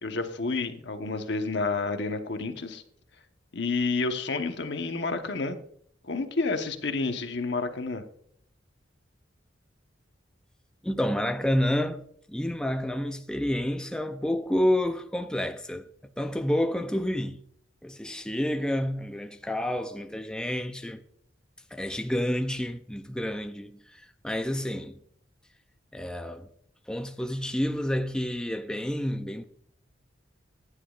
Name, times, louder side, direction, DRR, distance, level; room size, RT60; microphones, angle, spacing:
voice 1, 0.0-2.8 3.5-5.6 6.0-8.0, left 3 dB, 65° left, 1.1 m, -30 dB
voice 2, 10.8-15.9 16.2-17.4 17.8-21.0 21.7-24.9 25.9-26.5 26.9-29.4, left 1 dB, 5° left, 0.4 m, -29 dB
15.0 x 9.9 x 2.4 m
head